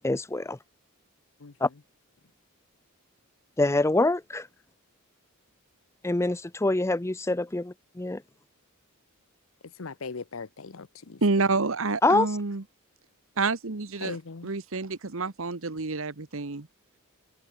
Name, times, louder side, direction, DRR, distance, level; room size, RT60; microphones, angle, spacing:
voice 1, 0.0-0.6 1.6-1.7 3.6-4.5 6.0-8.2 12.0-12.3, left 2 dB, 10° left, 0.5 m, -25 dB
voice 2, 9.7-11.2 14.0-14.5, left 4 dB, 65° left, 0.8 m, -39 dB
voice 3, 11.2-12.6 13.4-14.2 14.4-16.7, right 3 dB, 60° right, 1.2 m, -28 dB
head